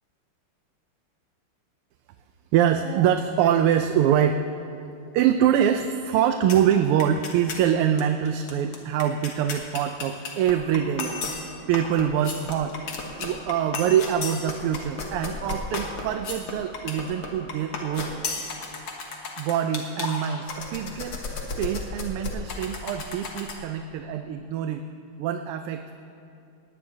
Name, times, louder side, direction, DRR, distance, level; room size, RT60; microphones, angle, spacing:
voice 1, 2.5-4.5 5.1-12.8 13.2-18.3 19.4-21.2 21.6-24.9 25.2-25.9, right 9 dB, 90° right, 7 dB, 1.5 m, -24 dB
sound 1, 6.5-6.7 7.0-7.6 8.0-8.1 8.3-23.6, left 4 dB, 75° left, 2.3 m, -34 dB
19.0 x 18.0 x 2.8 m, 2.6 s
omnidirectional pair, 2.4 m